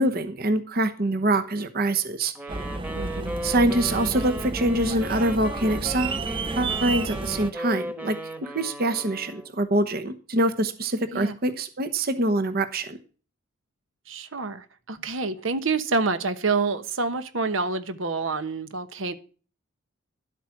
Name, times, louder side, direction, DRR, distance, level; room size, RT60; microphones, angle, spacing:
voice 1, 0.0-2.3 3.4-6.2 6.6-13.0, right 1 dB, 50° right, 1.0 m, -25 dB
Wind instrument woodwind instrument, 2.3-9.6, right 1 dB, 10° right, 1.3 m, -36 dB
sound 1, 2.5-7.5, right 3 dB, 25° right, 0.5 m, -32 dB
voice 2, 2.9-3.3 11.1-11.4 14.1-19.1, right 4 dB, 75° right, 1.1 m, -27 dB
11.5 x 8.2 x 5.9 m
head